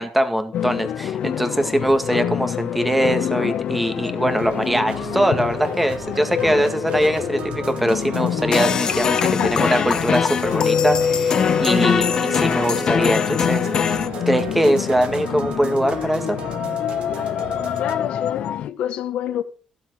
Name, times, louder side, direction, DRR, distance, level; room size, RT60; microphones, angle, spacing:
voice 1, 0.0-14.0 14.3-16.4, equal, 5° right, 1.8 m, -22 dB
sound 1, 0.5-18.7, left 10 dB, 60° left, 0.6 m, -27 dB
sound 2, 4.3-18.0, right 7 dB, 60° right, 1.6 m, -35 dB
sound 3, 8.5-14.1, left 6 dB, 40° left, 0.9 m, -21 dB
voice 2, 9.2-9.6 17.8-19.4, left 10 dB, 80° left, 1.6 m, -27 dB
15.5 x 7.3 x 6.3 m
cardioid pair, 150°, 2 cm